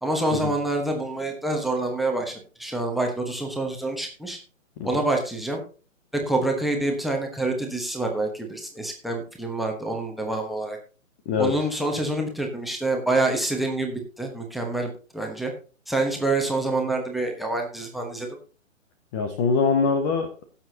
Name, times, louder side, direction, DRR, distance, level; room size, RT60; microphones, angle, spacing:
voice 1, 0.0-4.4 4.8-5.6 6.1-10.8 11.4-15.5 15.9-18.3, right 2 dB, ahead, 1 dB, 1.2 m, -27 dB
voice 2, 11.3-11.6 19.1-20.4, left 5 dB, 15° left, 7 dB, 0.8 m, -23 dB
17.0 x 7.5 x 2.8 m, 0.36 s
figure-of-eight pair, 135°, 40 cm